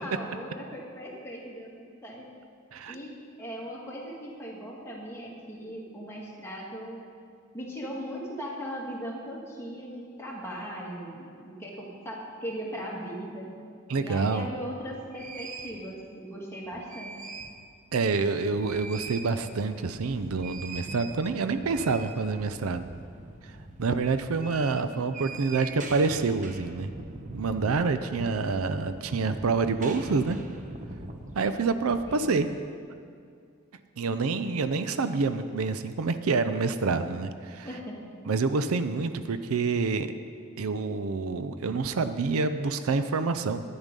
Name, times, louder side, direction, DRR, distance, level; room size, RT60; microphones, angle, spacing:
voice 1, 0.0-2.3 2.9-3.1 3.4-7.0 7.5-13.5 14.0-17.2 27.9-28.4 32.1-32.4 37.6-38.2, equal, 10° left, -3 dB, 1.9 m, -39 dB
voice 2, 13.9-14.5 17.9-22.9 23.8-26.9 27.3-30.4 31.4-32.5 34.0-37.7 38.3-40.1 40.6-43.6, right 4 dB, 75° right, 10 dB, 0.5 m, -27 dB
sound 1, 14.5-14.6 15.1-15.8 16.6-17.6 18.0-18.1 18.4-32.3, right 3 dB, 35° right, 0.9 m, -42 dB
10.5 x 9.8 x 5.3 m, 2.3 s
head